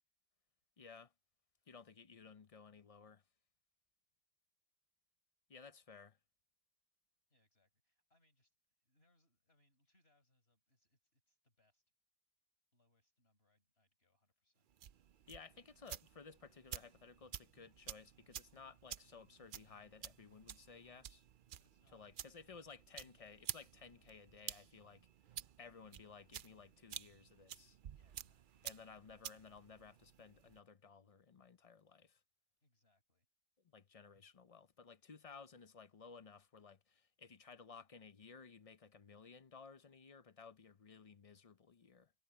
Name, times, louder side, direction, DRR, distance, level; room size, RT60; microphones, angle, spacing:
voice 1, 0.8-1.1 1.7-3.2 5.5-6.2 15.3-21.2 21.9-25.1 25.6-27.8 28.6-32.2 33.7-42.1, left 5 dB, 40° left, 0.6 m, -57 dB
voice 2, 7.3-11.8 12.7-14.7 21.6-22.8 27.9-28.7 32.6-33.3, left 1 dB, 55° left, 5.1 m, -79 dB
sound 1, 14.7-30.6, right 10 dB, 55° right, 0.6 m, -52 dB
omnidirectional pair, 1.2 m